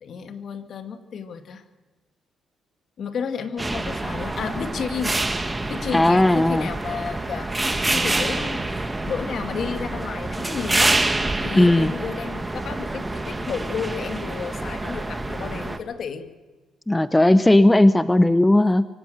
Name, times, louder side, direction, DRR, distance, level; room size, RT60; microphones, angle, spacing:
voice 1, 0.0-1.6 3.0-5.2 5.7-11.0 11.4-16.3, left 6 dB, 60° left, 8 dB, 2.1 m, -32 dB
sound 1, 3.6-15.8, right 2 dB, 15° right, 1.7 m, -27 dB
voice 2, 5.9-6.7 11.5-11.9 16.9-18.9, left 1 dB, 10° left, 13 dB, 0.7 m, -16 dB
25.0 x 17.0 x 6.7 m, 1.2 s
cardioid pair, 90°, 0 cm